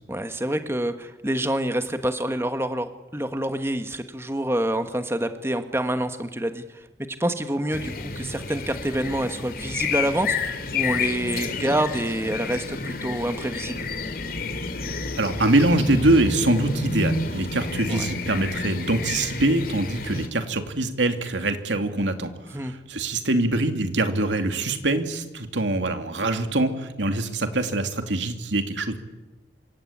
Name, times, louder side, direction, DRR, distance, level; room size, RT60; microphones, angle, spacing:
voice 1, 0.1-6.8 7.2-13.9 17.9-18.0 22.5-22.7, right 1 dB, 15° right, 8 dB, 1.5 m, -27 dB
sound 1, 7.7-20.3, left 4 dB, 50° left, 2.4 m, -30 dB
voice 2, 15.2-29.0, right 2 dB, 85° right, 7 dB, 2.7 m, -24 dB
27.0 x 24.5 x 8.7 m, 1.1 s
head